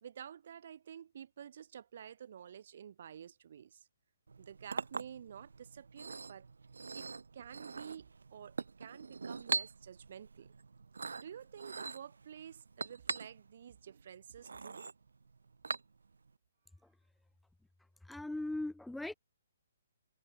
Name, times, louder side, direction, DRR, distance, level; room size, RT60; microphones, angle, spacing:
voice 1, 0.0-3.9 4.4-6.5 6.9-7.1 7.3-10.5 11.2-14.9, right 8 dB, 55° right, 1.2 m, -50 dB
Chink clink, 4.3-16.3, right 4 dB, 85° right, 1.3 m, -43 dB
voice 2, 18.0-19.1, left 2 dB, 5° left, 0.8 m, -39 dB
hypercardioid pair, 145°, 0 cm